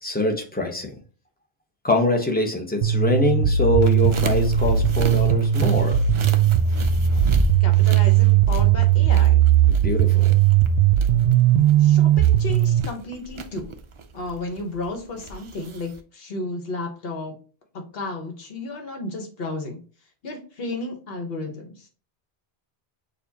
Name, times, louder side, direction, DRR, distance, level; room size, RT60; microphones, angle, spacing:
voice 1, 0.0-0.9 1.8-6.0 9.7-10.3, left 1 dB, 10° left, 2 dB, 0.7 m, -24 dB
sound 1, 2.8-12.8, right 10 dB, 65° right, 0.8 m, -18 dB
sound 2, 3.8-16.0, right 3 dB, 50° right, 0.3 m, -32 dB
voice 2, 7.6-9.4 11.8-13.7 14.1-17.3 17.9-19.8 20.2-21.7, left 2 dB, 65° left, 4 dB, 1.2 m, -33 dB
6.7 x 2.5 x 2.7 m, 0.38 s
omnidirectional pair, 1.1 m